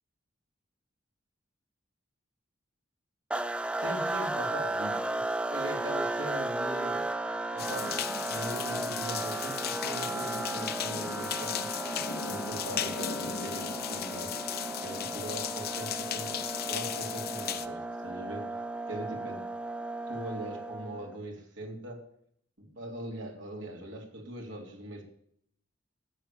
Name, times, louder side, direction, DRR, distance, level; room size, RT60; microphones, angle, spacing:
sound 1, 3.3-21.2, right 2 dB, 5° right, 0.5 m, -35 dB
voice 1, 3.8-5.2 5.5-7.0 7.5-11.7 12.2-16.4 16.7-18.5 18.9-19.4 20.0-22.0 22.6-25.0, right 1 dB, 75° right, 1 dB, 3.8 m, -41 dB
sound 2, 7.6-17.7, left 8 dB, 55° left, 0.9 m, -36 dB
14.0 x 9.1 x 8.8 m, 0.68 s
head